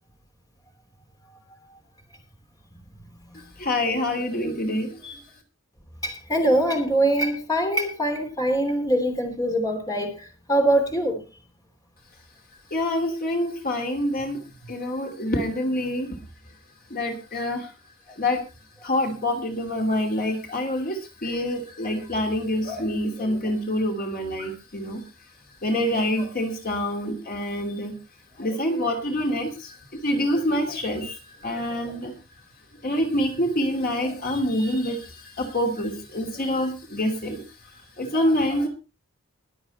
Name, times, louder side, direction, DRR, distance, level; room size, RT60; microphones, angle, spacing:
voice 1, 3.6-5.2 12.7-16.2 16.9-17.7 18.2-18.4 18.8-25.0 25.6-27.9 28.4-29.8 30.0-32.1 32.8-37.4 38.0-38.7, left 1 dB, 45° left, 3 dB, 2.7 m, -26 dB
voice 2, 6.0-11.2, right 1 dB, 20° left, 3 dB, 3.1 m, -23 dB
21.5 x 7.8 x 4.2 m, 0.32 s
head